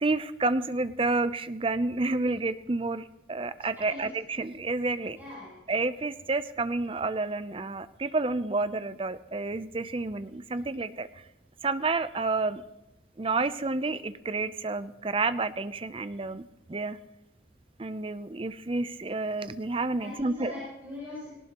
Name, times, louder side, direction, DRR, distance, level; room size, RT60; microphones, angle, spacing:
voice 1, 0.0-5.2 5.7-11.2 11.6-12.6 13.2-16.4 16.7-17.0 17.8-20.5, right 3 dB, 30° right, 13 dB, 0.5 m, -30 dB
voice 2, 5.2-5.5 20.0-21.3, left 2 dB, 10° right, -8 dB, 6.8 m, -41 dB
18.0 x 18.0 x 3.0 m, 0.95 s
head